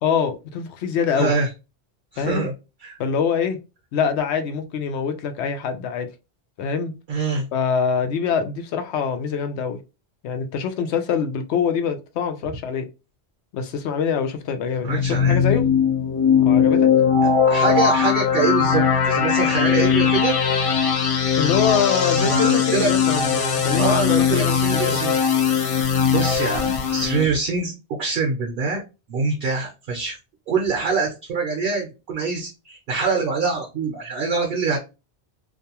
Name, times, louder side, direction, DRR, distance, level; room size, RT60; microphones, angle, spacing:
voice 1, 0.0-1.3 2.2-2.5 3.0-3.6 3.9-6.1 6.6-6.9 7.5-9.8 10.2-12.8 13.5-15.6 16.4-16.8 21.4-25.1, left 7 dB, 85° left, 0.9 m, -24 dB
voice 2, 1.1-1.5 2.1-2.5 2.8-3.0 7.1-7.5 14.8-15.4 17.5-20.3 22.2-22.9 23.7-25.1 26.1-27.7 28.0-28.8 29.1-30.2 30.5-34.8, right 4 dB, 60° right, 0.8 m, -24 dB
sound 1, 14.7-27.2, left 6 dB, 50° left, 0.4 m, -19 dB
2.5 x 2.2 x 2.8 m
omnidirectional pair, 1.1 m